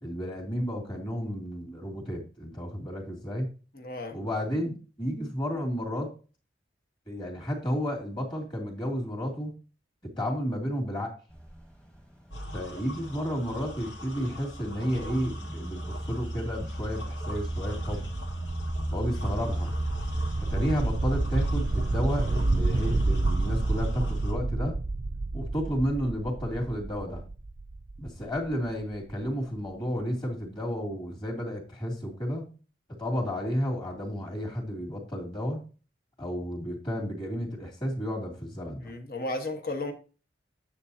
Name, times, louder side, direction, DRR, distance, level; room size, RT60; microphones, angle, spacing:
voice 1, 0.0-3.5 4.1-6.1 7.1-9.6 10.0-11.1 12.5-18.1 18.9-19.7 20.4-24.8 25.3-27.2 28.0-32.5 33.0-35.6 36.2-38.9, equal, 25° left, -1 dB, 2.7 m, -32 dB
voice 2, 3.7-4.2 38.8-39.9, left 2 dB, 55° left, 5 dB, 1.4 m, -34 dB
sound 1, 11.3-22.8, right 1 dB, 5° left, 1.2 m, -37 dB
sound 2, 12.3-24.3, equal, 70° left, 2.7 m, -43 dB
sound 3, 15.5-29.2, right 2 dB, 35° right, 0.5 m, -30 dB
9.9 x 7.1 x 2.8 m, 0.35 s
head